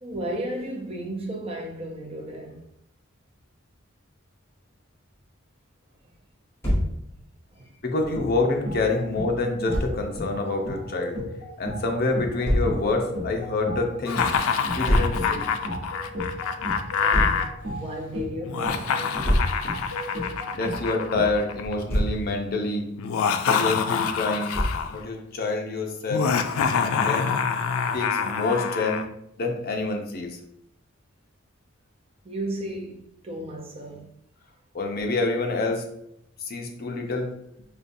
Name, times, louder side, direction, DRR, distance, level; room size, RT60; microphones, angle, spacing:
voice 1, 0.0-2.6 7.5-7.8 17.0-19.0 32.2-34.1, right 1 dB, 30° right, 0.5 m, -34 dB
Thump thud, 6.6-6.9 9.7-9.9 12.4-12.7 14.9-15.2 17.1-17.4 19.2-19.6 21.6-22.2 24.5-24.9, equal, 15° left, 1.4 m, -23 dB
voice 2, 7.8-11.2 11.6-14.2 14.7-15.5 16.6-16.7 20.5-22.8 23.5-24.5 24.9-26.3 26.8-27.3 27.9-29.0 29.4-30.4 34.7-35.8 36.5-37.3, left 3 dB, 45° left, 0.6 m, -27 dB
sound 1, 8.1-21.5, equal, 75° right, 1.1 m, -35 dB
Laughter, 14.1-17.5 18.4-21.7 23.0-25.0 26.1-29.0, left 6 dB, 85° left, 0.3 m, -26 dB
5.0 x 2.3 x 2.6 m
head